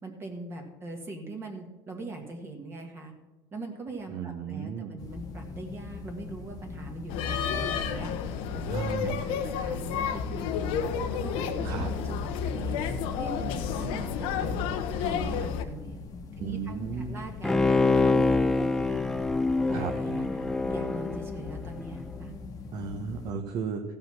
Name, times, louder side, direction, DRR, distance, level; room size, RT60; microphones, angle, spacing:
voice 1, 0.0-3.1 3.5-8.1 8.5-10.8 11.2-12.8 13.2-14.7 15.0-16.0 16.4-19.0 19.7-22.3, right 2 dB, 25° right, 3 dB, 1.5 m, -41 dB
voice 2, 4.1-4.9 8.7-9.2 11.6-11.9 16.4-17.2 19.7-19.9 22.7-23.8, right 6 dB, 50° right, 3 dB, 1.0 m, -34 dB
sound 1, 5.0-23.3, left 4 dB, 40° left, 1.2 m, -42 dB
sound 2, 7.1-15.6, left 7 dB, 70° left, 0.9 m, -31 dB
Bowed string instrument, 17.4-22.0 22.4-22.5, left 3 dB, 5° left, 0.5 m, -26 dB
15.5 x 5.6 x 5.8 m, 1.2 s
cardioid pair, 135°, 9 cm